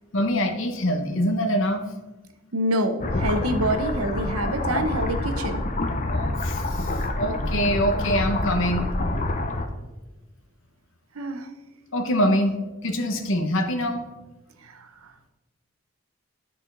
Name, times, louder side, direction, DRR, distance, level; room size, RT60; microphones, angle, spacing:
voice 1, 0.1-2.2 6.1-8.9 11.9-12.5 12.8-14.0, equal, 60° left, 5 dB, 0.9 m, -24 dB
voice 2, 2.5-5.6 11.2-11.5 14.6-14.9, right 1 dB, 80° right, 8 dB, 0.8 m, -26 dB
sound 1, 3.0-9.7, left 2 dB, 35° left, 0.7 m, -27 dB
12.5 x 4.3 x 3.9 m, 1.1 s
head